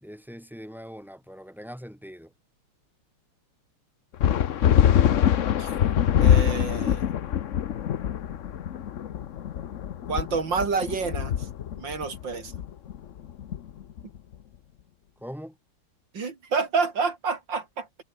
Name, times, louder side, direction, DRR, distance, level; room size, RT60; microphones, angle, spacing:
voice 1, 0.0-2.3 15.2-15.5, equal, ahead, 4.4 m, -41 dB
sound 1, 4.2-14.2, left 10 dB, 65° left, 0.7 m, -24 dB
voice 2, 6.2-7.1 10.1-11.3 11.8-12.5 16.1-18.0, right 4 dB, 60° right, 3.4 m, -28 dB
omnidirectional pair, 2.4 m